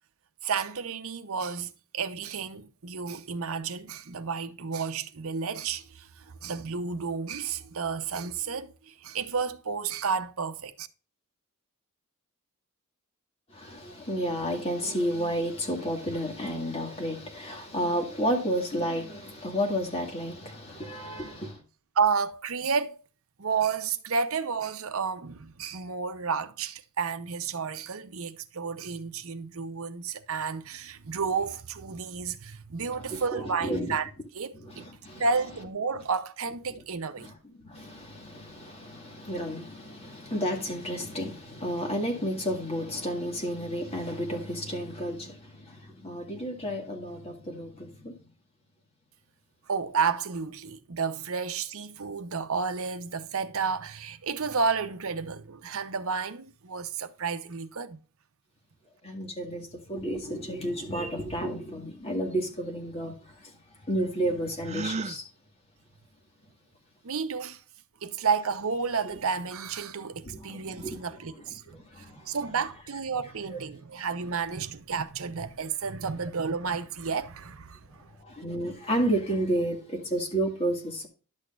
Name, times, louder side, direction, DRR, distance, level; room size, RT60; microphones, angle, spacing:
voice 1, 0.4-10.9 21.9-23.0 23.4-34.9 35.2-37.3 49.7-58.0 67.0-67.6 68.0-71.8 72.2-78.0, right 5 dB, 65° right, 0.8 m, -31 dB
voice 2, 13.5-21.6 33.0-33.9 34.5-35.2 37.2-37.3 37.6-48.2 59.0-63.6 63.9-65.3 70.3-71.0 71.7-72.4 73.5-73.6 78.2-81.1, equal, 25° left, 2.1 m, -31 dB
Gasp, 64.6-65.2, right 3 dB, 30° right, 0.5 m, -32 dB
11.5 x 6.5 x 2.5 m
head